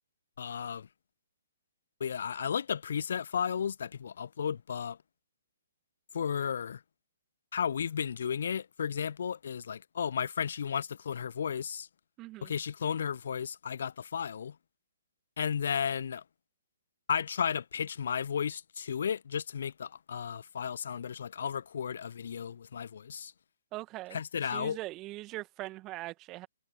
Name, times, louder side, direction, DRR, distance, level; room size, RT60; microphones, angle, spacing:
voice 1, 0.4-0.9 2.0-5.0 6.1-6.8 7.5-11.9 12.4-14.6 15.4-16.2 17.1-23.3 24.1-24.8, left 7 dB, 55° left, 0.9 m, -34 dB
voice 2, 12.2-12.5 23.7-24.2 24.5-26.5, right 18 dB, 20° right, 2.1 m, -41 dB
figure-of-eight pair, 125°, 0 cm